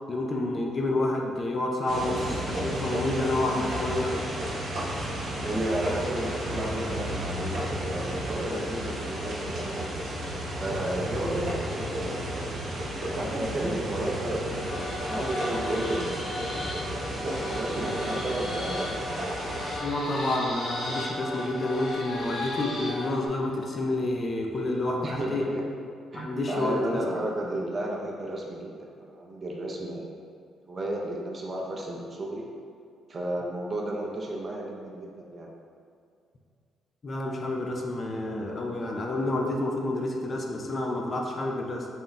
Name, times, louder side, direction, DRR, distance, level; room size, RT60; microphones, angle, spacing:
voice 1, 0.1-4.2 19.8-25.5 26.1-27.1 37.0-41.9, left 2 dB, 35° left, 1 dB, 0.4 m, -29 dB
sound 1, 1.9-19.8, right 1 dB, 50° right, 0.8 m, -32 dB
voice 2, 5.4-10.0 10.6-12.5 13.0-16.7 17.1-19.3 25.0-25.6 26.1-30.2 30.7-32.5 33.1-35.5, right 1 dB, 30° right, -2 dB, 0.5 m, -33 dB
sound 2, 14.6-23.3, left 1 dB, 60° left, 0.8 m, -35 dB
3.6 x 2.2 x 3.9 m, 2.3 s
cardioid pair, 125°, 0 cm